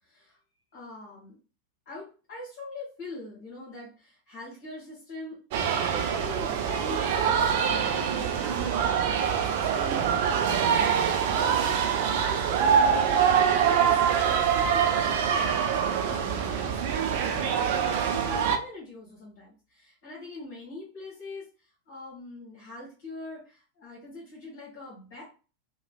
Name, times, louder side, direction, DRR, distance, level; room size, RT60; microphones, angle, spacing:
voice 1, 0.7-1.4 1.9-5.4 5.9-13.3 13.6-14.0 14.3-21.4 21.9-25.2, left 2 dB, 55° left, -6 dB, 1.2 m, -43 dB
sound 1, 5.5-18.6, right 7 dB, 50° right, 0.4 m, -24 dB
3.1 x 2.2 x 2.2 m, 0.35 s
figure-of-eight pair, 90°, 0 cm